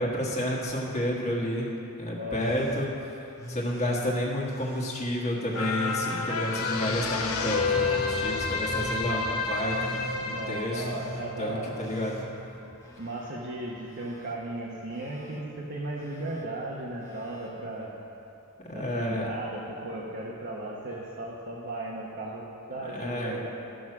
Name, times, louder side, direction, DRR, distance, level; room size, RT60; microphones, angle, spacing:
voice 1, 0.0-2.9 3.5-10.8 11.4-12.2 18.6-19.3 22.9-23.5, left 1 dB, 30° left, -3 dB, 1.5 m, -30 dB
voice 2, 2.1-2.6 10.3-11.9 13.0-17.9 18.7-23.5, right 1 dB, 50° right, -4 dB, 1.1 m, -36 dB
Telephone, 2.3-2.9 3.3-3.9 4.4-4.9 5.5-6.0 6.5-7.0 7.5-8.1 8.6-9.1 9.6-10.2 10.7-11.2 11.7-13.3 13.6-14.3 14.9-15.4 15.9-16.4 17.0-17.5 18.7-18.8, left 1 dB, 15° left, 1.3 m, -41 dB
sound 1, 5.5-12.2 12.6-12.7, left 4 dB, 70° left, 0.9 m, -30 dB
13.0 x 6.3 x 6.0 m, 2.8 s
head